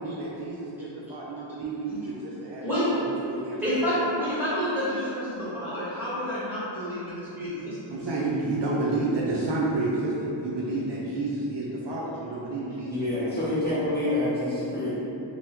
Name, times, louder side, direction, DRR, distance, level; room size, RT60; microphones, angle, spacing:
voice 1, 0.0-3.9 7.9-13.5, right 2 dB, 60° right, -5 dB, 0.5 m, -30 dB
voice 2, 2.6-3.0 3.6-8.0, equal, 5° right, -11 dB, 1.4 m, -29 dB
voice 3, 12.8-14.9, left 1 dB, 20° left, -11 dB, 0.7 m, -27 dB
3.4 x 2.1 x 2.9 m, 3.0 s
wide cardioid pair, 80°, 48 cm